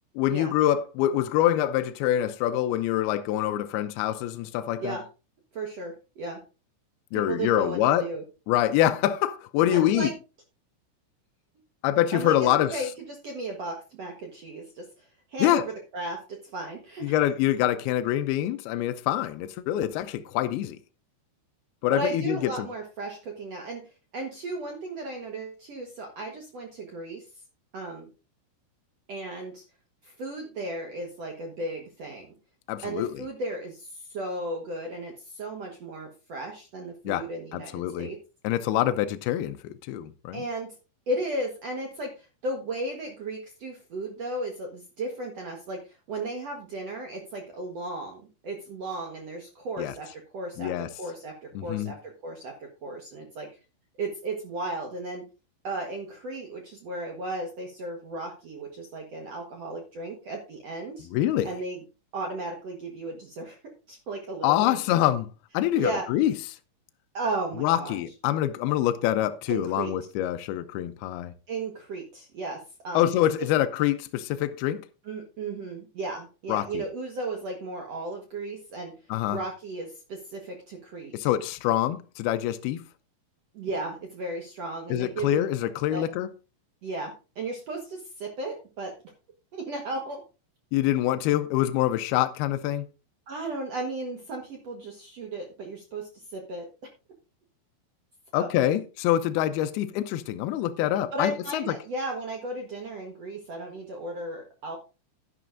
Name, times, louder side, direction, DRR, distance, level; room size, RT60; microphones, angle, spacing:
voice 1, 0.2-5.0 7.1-8.1 8.5-10.1 11.8-12.8 15.4-15.6 17.0-20.8 21.8-22.7 32.7-33.2 37.1-38.1 38.4-40.4 49.8-49.9 50.6-50.9 51.6-51.9 61.1-61.5 64.4-65.3 65.5-66.3 67.6-71.3 72.9-74.9 76.5-76.8 79.1-79.4 81.1-82.8 84.9-86.3 90.7-92.9 98.3-101.7, left 12 dB, 85° left, 2.3 m, -25 dB
voice 2, 5.5-6.4 7.1-8.2 9.7-10.1 12.1-12.3 12.7-17.1 21.9-23.8 24.1-27.2 27.7-28.1 29.1-29.6 30.0-32.3 32.8-38.2 40.3-40.7 41.1-53.5 54.0-55.2 55.6-61.1 61.4-61.8 62.1-63.6 63.9-64.8 65.7-66.1 67.1-67.9 69.5-69.9 71.5-73.1 75.1-78.9 79.3-81.1 83.5-85.4 85.9-86.1 86.8-88.9 89.5-90.2 93.3-96.7 98.3-98.5 101.1-104.8, right 2 dB, 80° right, 1.4 m, -35 dB
11.0 x 11.0 x 2.5 m
omnidirectional pair, 5.0 m